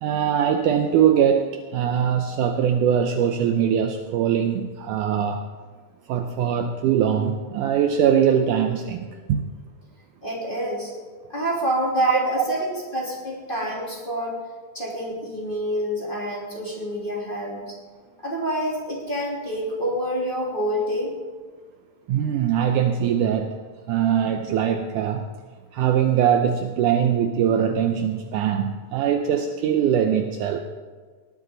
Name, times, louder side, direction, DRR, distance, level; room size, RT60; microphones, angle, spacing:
voice 1, 0.0-5.5 6.1-9.4 12.4-12.6 22.1-23.6 23.9-25.3 25.7-30.6, right 8 dB, 75° right, 6 dB, 2.0 m, -22 dB
voice 2, 10.2-10.9 11.3-14.4 14.7-17.6 18.2-21.1, equal, 15° left, -4 dB, 3.0 m, -27 dB
19.0 x 12.0 x 3.9 m, 1.5 s
omnidirectional pair, 4.1 m